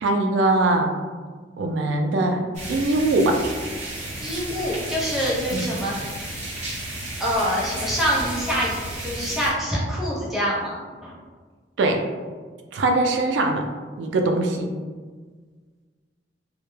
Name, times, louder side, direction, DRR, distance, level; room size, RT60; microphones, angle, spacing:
voice 1, 0.0-0.9 1.6-2.4 2.7-3.4 5.5-5.7 11.8-12.0 12.7-13.7 14.0-14.7, right 2 dB, 80° right, 3 dB, 0.3 m, -21 dB
sound 1, 2.5-9.5, right 1 dB, 40° right, 0.9 m, -33 dB
voice 2, 4.2-5.9 7.2-11.1, equal, ahead, -7 dB, 0.5 m, -25 dB
2.1 x 2.1 x 3.0 m, 1.5 s
head